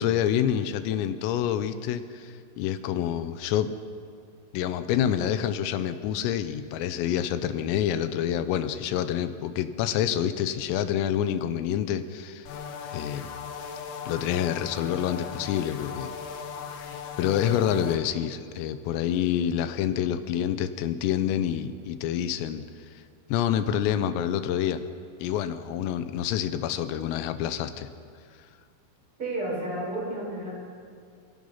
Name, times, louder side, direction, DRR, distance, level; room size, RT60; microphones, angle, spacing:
voice 1, 0.0-3.7 4.5-12.5 12.9-13.3 14.1-16.1 17.2-22.7 23.3-24.8 25.2-27.9, left 10 dB, 85° left, 10 dB, 3.5 m, -27 dB
sound 1, 12.5-18.0, left 6 dB, 65° left, 2.8 m, -38 dB
voice 2, 29.2-30.7, right 1 dB, 25° right, -5 dB, 8.1 m, -32 dB
28.5 x 17.0 x 5.7 m, 2.2 s
omnidirectional pair, 5.9 m